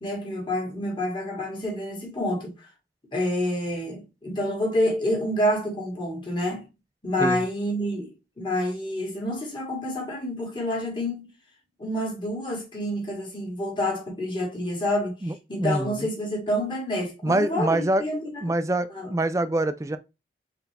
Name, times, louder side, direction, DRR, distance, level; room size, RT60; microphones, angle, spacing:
voice 1, 0.0-2.7 3.1-6.7 7.0-11.3 11.8-18.5 18.9-19.2, left 1 dB, 25° left, 1.9 m, -28 dB
voice 2, 15.2-16.1 17.2-18.0 18.4-20.0, right 2 dB, 15° right, 0.4 m, -25 dB
4.6 x 3.4 x 3.3 m
head